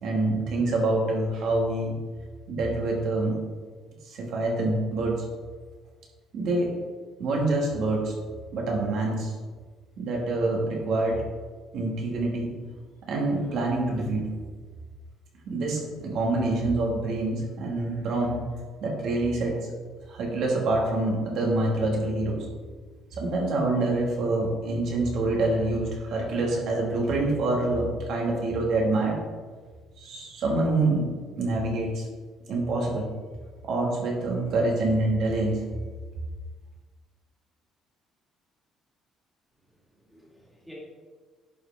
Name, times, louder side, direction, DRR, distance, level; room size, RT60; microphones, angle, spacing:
voice 1, 0.0-2.0 2.5-3.4 4.0-5.2 6.3-6.8 7.2-8.2 8.5-9.3 10.0-11.3 11.7-12.6 13.1-14.3 15.5-18.5 18.8-19.7 20.1-22.5 23.1-29.2 30.0-31.1 31.4-32.1 32.5-33.1 33.7-35.6, right 2 dB, 60° right, -1 dB, 1.8 m, -26 dB
voice 2, 39.7-40.7, equal, ahead, -5 dB, 2.3 m, -52 dB
10.5 x 4.9 x 3.5 m, 1.4 s
cardioid pair, 135°, 0 cm